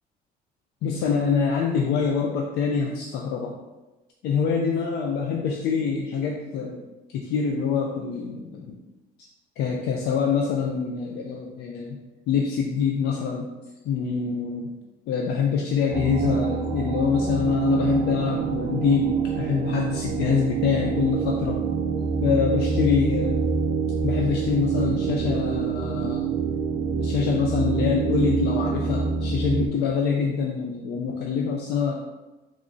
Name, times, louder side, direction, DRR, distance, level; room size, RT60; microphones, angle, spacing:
voice 1, 0.8-3.6 4.2-6.8 7.1-8.8 9.6-12.0 12.3-13.5 13.8-14.7 15.1-21.6 22.2-23.4 24.0-26.4 27.0-31.9, left 6 dB, 75° left, 0 dB, 0.4 m, -25 dB
sound 1, 15.9-29.7, right 5 dB, 45° right, 0.4 m, -26 dB
3.5 x 3.1 x 2.5 m, 1.1 s
cardioid pair, 110°, 17 cm